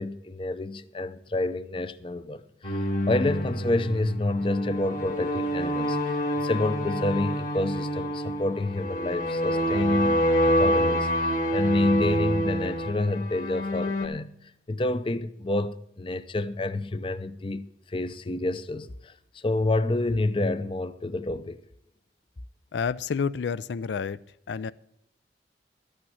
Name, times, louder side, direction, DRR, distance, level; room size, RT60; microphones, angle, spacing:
voice 1, 0.0-10.2 10.5-14.3 14.7-21.6, left 2 dB, 30° left, 0.5 m, -28 dB
sound 1, 2.6-14.1, equal, 45° left, 1.7 m, -27 dB
voice 2, 22.7-24.2 24.5-24.7, left 6 dB, 85° left, 0.4 m, -29 dB
12.0 x 8.8 x 6.4 m
head